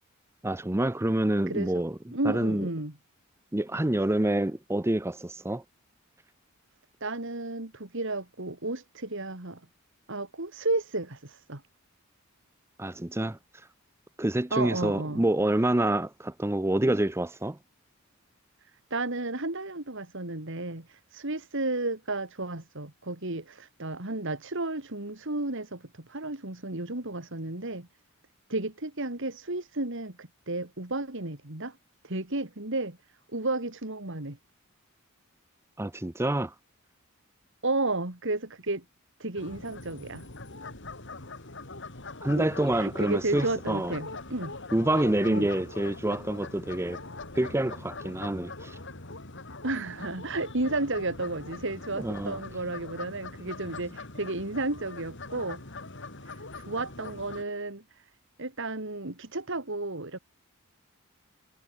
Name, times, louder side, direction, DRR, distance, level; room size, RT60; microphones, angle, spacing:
voice 1, 0.4-2.7 3.5-5.6 12.8-13.4 14.2-17.6 35.8-36.5 42.2-43.9 44.7-47.0 47.3-48.8 52.0-52.4, right 1 dB, 10° right, 0.7 m, -27 dB
voice 2, 1.5-1.8 2.1-2.9 7.0-9.6 10.1-11.6 14.5-15.2 18.9-20.9 21.1-27.9 28.5-31.8 32.0-33.0 33.3-34.4 37.6-38.8 39.2-40.3 42.4-44.5 45.3-45.5 49.6-55.6 56.6-57.8 58.4-60.2, right 2 dB, 60° right, 2.9 m, -32 dB
sound 1, 39.4-57.4, left 3 dB, 60° left, 3.7 m, -42 dB
head